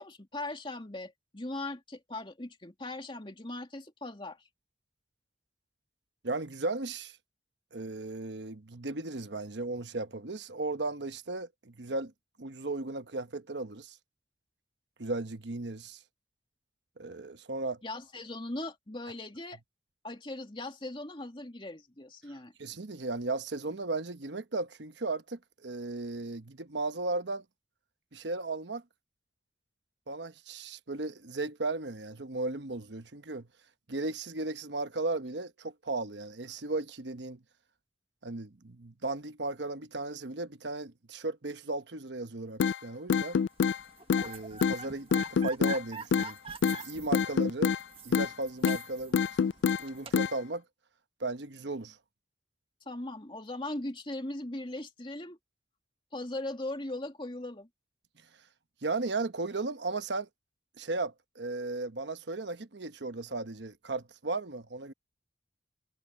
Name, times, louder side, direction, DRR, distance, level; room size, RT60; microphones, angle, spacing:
voice 1, 0.0-4.4 17.8-19.6 20.0-22.5 52.9-55.4 56.1-57.7, left 2 dB, 30° left, 2.4 m, -39 dB
voice 2, 6.2-7.2 7.7-12.1 12.4-14.0 15.0-16.0 17.0-17.8 22.6-27.4 28.1-28.8 30.1-33.5 33.9-37.4 38.2-43.4 44.2-46.4 46.7-47.7 48.0-49.5 49.8-50.6 51.2-52.0 58.8-60.3 60.8-64.9, right 2 dB, 75° right, 1.1 m, -36 dB
sound 1, 42.6-42.8 43.1-43.8 44.1-44.3 44.6-44.8 45.1-45.8 46.1-46.3 46.6-46.8 47.1-47.8 48.1-48.3 48.6-48.8 49.1-49.8 50.1-50.3, left 6 dB, 80° left, 0.3 m, -26 dB
sound 2, 43.8-50.3, right 5 dB, 30° right, 1.5 m, -45 dB
head